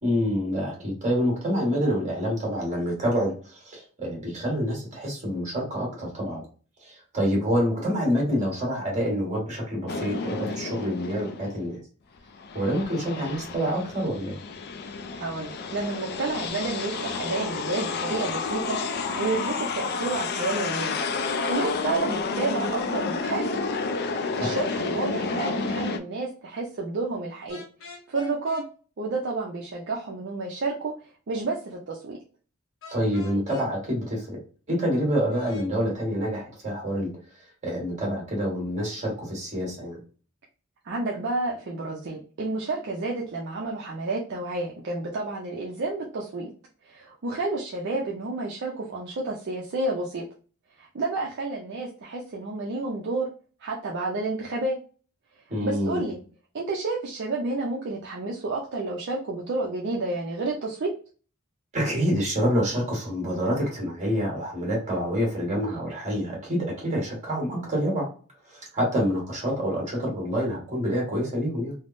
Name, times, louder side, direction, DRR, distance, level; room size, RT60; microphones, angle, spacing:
voice 1, 0.0-6.4 6.8-11.8 12.5-14.4 24.3-24.6 32.9-34.4 34.7-37.1 37.6-40.0 55.5-56.0 61.7-68.1 68.5-71.7, equal, 35° right, -2 dB, 1.4 m, -27 dB
sound 1, 9.9-11.7 12.2-26.0, left 4 dB, 50° left, 0.3 m, -30 dB
voice 2, 15.1-21.0 21.4-23.6 24.0-27.6 28.1-28.6 29.0-30.9 31.3-32.2 40.8-46.5 46.8-50.2 50.8-53.3 53.6-54.8 55.6-56.2 56.5-60.9, right 3 dB, 55° right, -2 dB, 0.5 m, -30 dB
sound 2, 27.5-28.7 32.8-33.7 35.3-35.7, left 5 dB, 65° left, 0.8 m, -44 dB
3.4 x 2.0 x 2.5 m, 0.39 s
head